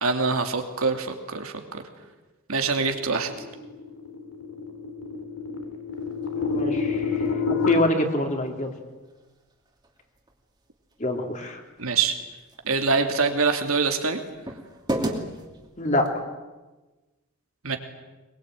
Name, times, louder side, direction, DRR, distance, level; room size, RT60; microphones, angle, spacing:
voice 1, 0.0-1.8 2.5-3.3 11.8-12.1 12.6-14.2 17.6-17.8, right 4 dB, 80° right, 5 dB, 2.8 m, -24 dB
sound 1, 3.0-7.7, left 5 dB, 85° left, 3.6 m, -29 dB
sound 2, 5.9-16.2, right 1 dB, 20° right, 2.7 m, -39 dB
voice 2, 6.3-8.7 11.0-11.6 15.8-16.2, left 1 dB, 35° left, 3 dB, 3.1 m, -26 dB
22.5 x 22.5 x 9.2 m, 1.2 s
head